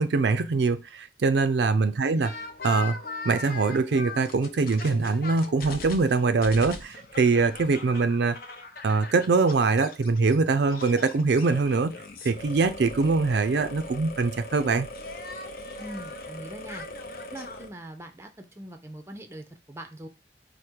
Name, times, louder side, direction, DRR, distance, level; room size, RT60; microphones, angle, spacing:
voice 1, 0.0-2.3 2.6-3.0 3.2-8.4 8.8-11.9 12.2-14.9, right 4 dB, 70° right, 0.4 m, -23 dB
voice 2, 1.8-2.3 15.8-16.9 17.3-20.1, right 1 dB, 15° right, 0.5 m, -42 dB
sound 1, 2.2-10.4 10.7-17.7, left 3 dB, 50° left, 0.6 m, -40 dB
4.9 x 2.1 x 4.4 m
head